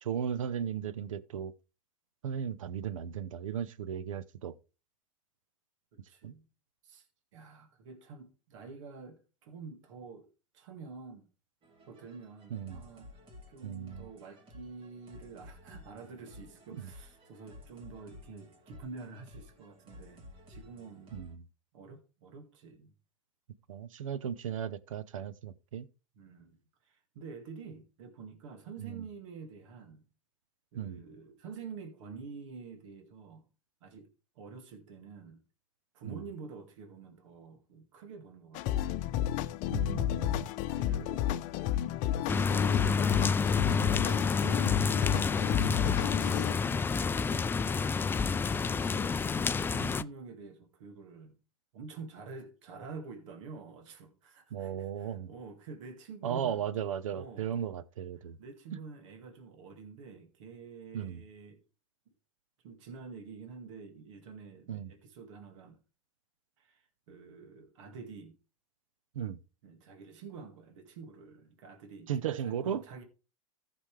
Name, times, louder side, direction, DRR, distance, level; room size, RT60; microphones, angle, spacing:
voice 1, 0.0-1.5 2.2-4.5 6.2-6.3 12.5-12.8 13.6-14.1 16.7-16.8 21.1-21.4 23.7-25.9 28.8-29.0 30.7-31.0 36.0-36.2 39.7-40.5 45.6-45.9 54.5-55.3 56.2-58.4 60.9-61.2 64.7-64.9 69.1-69.4 72.1-72.8, right 8 dB, 85° right, 0.7 m, -36 dB
voice 2, 6.1-6.5 6.8-7.1 7.3-10.3 10.5-11.3 11.9-13.1 13.5-21.1 21.7-22.9 26.2-30.0 30.7-33.4 33.8-34.1 34.4-35.4 35.9-39.0 39.7-41.5 42.1-42.7 43.7-45.0 45.6-48.0 48.5-51.4 51.7-56.6 57.1-57.5 58.2-61.6 62.6-65.8 66.6-68.4 69.6-73.0, right 5 dB, 70° right, 2.0 m, -48 dB
sound 1, 11.6-21.3, left 2 dB, 35° right, 2.8 m, -54 dB
sound 2, 38.5-46.5, left 12 dB, 50° left, 0.7 m, -32 dB
sound 3, 42.3-50.0, left 5 dB, 15° left, 0.4 m, -29 dB
14.5 x 6.1 x 3.3 m
hypercardioid pair, 110°, 16 cm